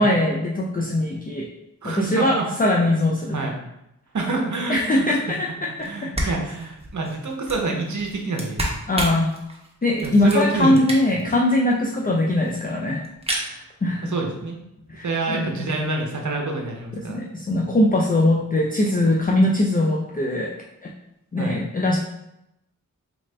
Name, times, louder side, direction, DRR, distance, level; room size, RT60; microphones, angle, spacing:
voice 1, 0.0-1.5 1.8-3.4 4.7-5.9 6.2-6.3 8.9-9.3 9.8-13.0 13.4-14.1 14.9-15.6 16.9-20.5 20.8-20.9 21.3-22.0, left 1 dB, 25° left, -1 dB, 0.4 m, -21 dB
voice 2, 1.8-2.5 3.3-3.5 4.1-5.2 5.8-8.7 10.0-10.8 11.1-11.2 14.0-14.6 15.0-17.2 21.4-21.6, right 3 dB, 60° right, 1 dB, 0.8 m, -27 dB
sound 1, 5.8-5.9 6.1-11.3 11.7-11.8 12.0-12.1 12.2-12.7 13.0-13.5, right 1 dB, 20° right, 0.8 m, -31 dB
4.2 x 2.4 x 3.2 m, 0.85 s
wide cardioid pair, 65°, 33 cm